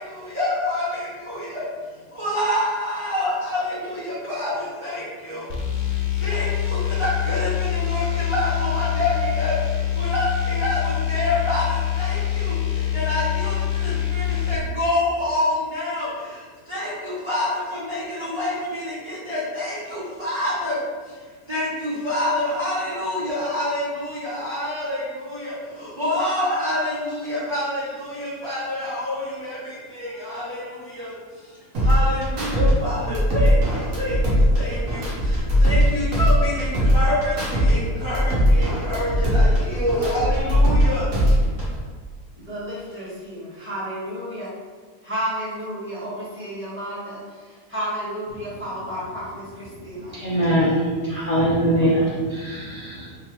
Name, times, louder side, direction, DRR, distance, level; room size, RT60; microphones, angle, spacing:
voice 1, 0.1-1.7 2.1-41.4, left 1 dB, 30° right, -9 dB, 0.5 m, -27 dB
sound 1, 5.5-14.6, left 11 dB, 70° left, 1.1 m, -25 dB
sound 2, 31.7-32.7 33.0-35.9 36.1-37.7 38.0-40.8 41.1-41.7, equal, 55° right, 1.4 m, -19 dB
voice 2, 42.4-44.5 45.0-50.2, equal, 10° right, -11 dB, 1.2 m, -32 dB
voice 3, 50.1-53.1, equal, 50° left, -8 dB, 0.4 m, -22 dB
3.3 x 3.3 x 3.1 m, 1.5 s
omnidirectional pair, 1.7 m